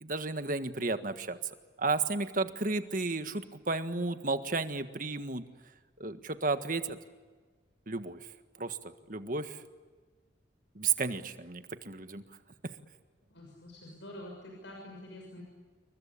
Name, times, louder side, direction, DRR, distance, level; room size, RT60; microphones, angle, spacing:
voice 1, 0.0-1.4 1.8-5.4 6.0-7.0 7.9-8.3 8.6-8.8 9.1-9.6 10.7-12.2, right 3 dB, 45° right, 9 dB, 1.6 m, -33 dB
voice 2, 13.3-15.4, left 1 dB, 85° left, 0 dB, 6.6 m, -47 dB
29.0 x 23.0 x 8.5 m, 1.4 s
head